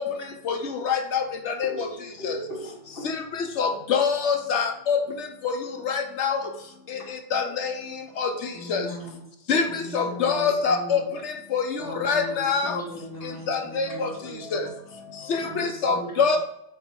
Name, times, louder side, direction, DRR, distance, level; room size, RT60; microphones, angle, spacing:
voice 1, 0.0-1.9 2.2-2.4 3.0-5.6 5.8-6.5 6.9-8.9 9.5-12.8 13.2-14.1 14.5-14.7 15.3-16.4, left 5 dB, 85° left, 6 dB, 1.1 m, -26 dB
voice 2, 1.6-3.1 7.0-7.1 13.9-14.0 14.4-14.5 15.0-15.3, equal, 55° left, -1 dB, 1.7 m, -38 dB
voice 3, 8.5-9.3 9.6-11.0 11.8-14.7 15.4-16.4, equal, 10° right, -5 dB, 3.0 m, -39 dB
8.4 x 4.6 x 4.6 m, 0.81 s
omnidirectional pair, 1.2 m